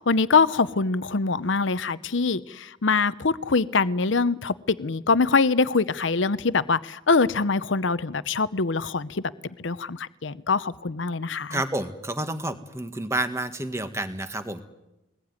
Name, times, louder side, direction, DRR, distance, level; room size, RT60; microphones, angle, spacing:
voice 1, 0.0-9.2 9.6-11.6, left 4 dB, 75° left, 16 dB, 0.8 m, -24 dB
voice 2, 11.5-14.6, right 1 dB, 15° right, 8 dB, 1.7 m, -29 dB
22.5 x 20.5 x 9.7 m, 0.95 s
head